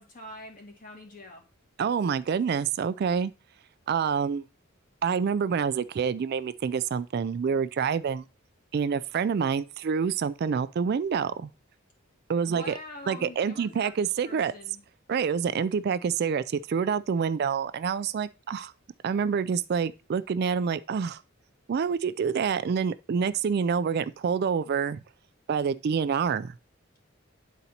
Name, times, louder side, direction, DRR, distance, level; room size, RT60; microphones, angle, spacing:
voice 1, 0.0-1.4 12.4-13.9 14.2-14.8, left 1 dB, 40° left, 2.1 m, -44 dB
voice 2, 1.8-3.3 3.9-4.4 5.0-8.2 8.7-11.5 12.3-12.7 13.1-14.5 15.1-18.7 19.0-21.2 21.7-25.0 25.5-26.5, right 6 dB, 50° right, 0.3 m, -27 dB
9.5 x 4.0 x 4.2 m
head